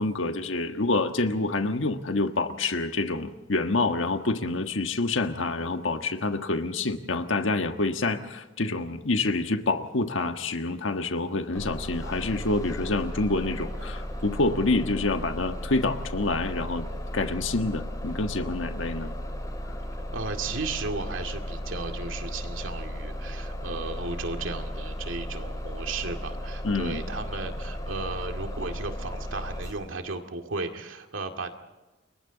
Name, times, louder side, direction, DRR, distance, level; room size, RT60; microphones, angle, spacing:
voice 1, 0.0-16.9 17.1-19.1 26.6-27.0, left 2 dB, 75° left, 7 dB, 1.5 m, -27 dB
Bus, 11.5-29.7, equal, 20° left, 3.8 m, -35 dB
voice 2, 20.1-31.5, right 3 dB, 80° right, 5 dB, 2.2 m, -35 dB
29.0 x 22.5 x 4.0 m, 1.1 s
head